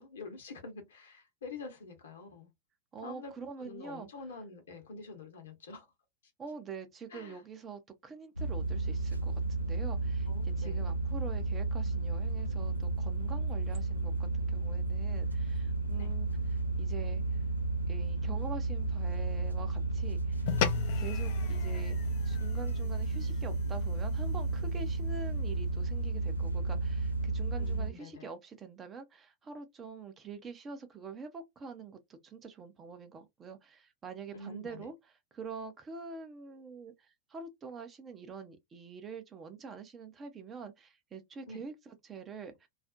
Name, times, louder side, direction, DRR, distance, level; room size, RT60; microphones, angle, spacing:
voice 1, 0.0-2.5 3.0-3.3 3.6-5.9 7.1-7.4 10.3-10.8 16.0-16.1 27.6-28.3 34.3-34.9 41.5-41.6, left 3 dB, 65° left, 0.8 m, -46 dB
voice 2, 2.9-4.1 6.4-16.3 16.8-17.4 17.9-20.5 21.0-22.0 22.2-34.9 35.3-42.7, right 5 dB, 25° right, 0.5 m, -46 dB
sound 1, 8.4-27.9, right 3 dB, 90° right, 0.4 m, -32 dB
sound 2, 20.5-25.1, left 10 dB, 50° left, 0.3 m, -38 dB
2.4 x 2.0 x 2.5 m
figure-of-eight pair, 90°, 0 cm